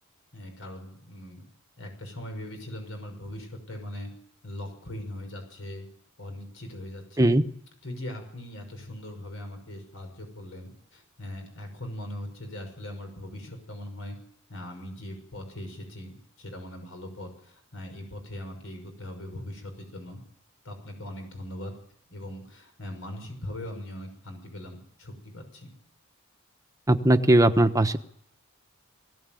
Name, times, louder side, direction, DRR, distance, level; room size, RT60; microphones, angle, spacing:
voice 1, 0.3-1.4 1.8-4.1 4.4-5.9 6.2-7.3 7.8-14.2 14.5-20.2 20.6-21.7 22.1-25.7, left 1 dB, 70° left, 5 dB, 6.2 m, -40 dB
voice 2, 26.9-28.0, right 1 dB, 15° right, 8 dB, 1.1 m, -19 dB
21.0 x 17.0 x 9.2 m, 0.69 s
head